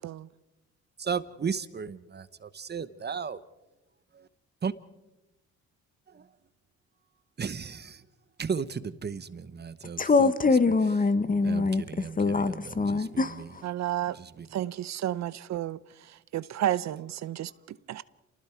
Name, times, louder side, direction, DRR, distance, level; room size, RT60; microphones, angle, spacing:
voice 1, 1.0-3.4 4.6-4.7 6.1-6.2 7.4-8.0 8.4-10.3 11.4-13.5 14.2-14.5, right 6 dB, 35° right, 1.0 m, -35 dB
voice 2, 10.0-13.6, left 4 dB, 30° left, 1.2 m, -24 dB
voice 3, 13.6-14.2 14.5-18.0, right 12 dB, 65° right, 0.6 m, -32 dB
28.5 x 20.0 x 4.7 m
cardioid pair, 90°, 30 cm